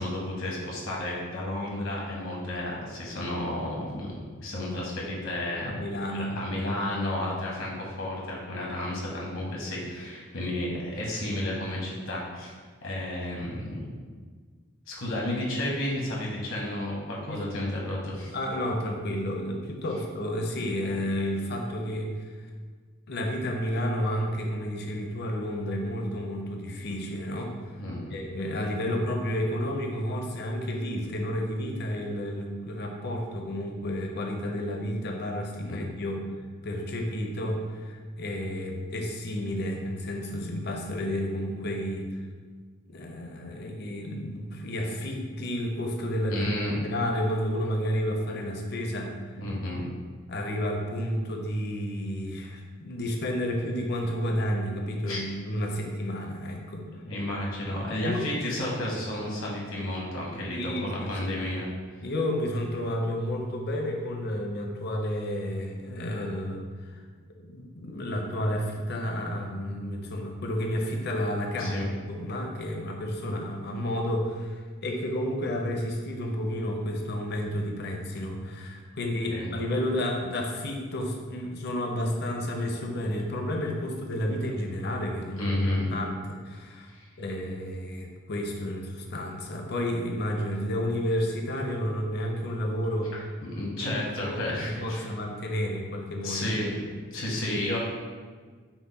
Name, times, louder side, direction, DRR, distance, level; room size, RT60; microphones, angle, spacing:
voice 1, 0.0-5.8 6.1-12.5 12.8-13.8 14.9-18.4 27.8-28.1 35.6-35.8 46.3-46.8 49.4-49.9 55.1-55.2 57.0-61.7 71.6-71.9 79.3-79.5 85.4-85.9 86.9-87.1 93.4-95.1 96.2-96.7 97.1-97.8, left 1 dB, 75° left, -3 dB, 1.2 m, -32 dB
voice 2, 5.7-6.7 17.3-17.5 18.3-22.3 23.1-27.5 28.1-36.2 36.6-42.2 42.9-46.5 46.8-49.1 50.3-56.9 58.0-58.2 60.5-61.4 62.0-67.0 67.4-85.5 85.9-86.9 87.2-93.1 93.8-96.5, equal, 50° left, 2 dB, 0.6 m, -31 dB
5.8 x 2.1 x 4.1 m, 1.5 s
head